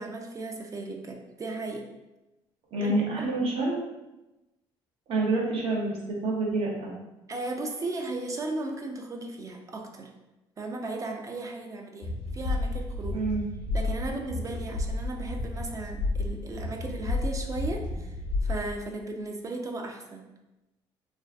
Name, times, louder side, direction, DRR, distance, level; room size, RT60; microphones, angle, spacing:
voice 1, 0.0-1.9 2.8-3.3 7.3-10.1 10.6-13.2 13.7-18.2 18.4-20.2, right 2 dB, 30° right, 3 dB, 0.4 m, -36 dB
voice 2, 2.7-3.8 5.1-6.0 6.2-6.9 13.1-13.4, right 2 dB, 65° right, -2 dB, 0.7 m, -27 dB
sound 1, 12.0-18.8, left 2 dB, 80° left, 0.6 m, -31 dB
2.4 x 2.4 x 2.2 m, 0.99 s
cardioid pair, 85°, 11 cm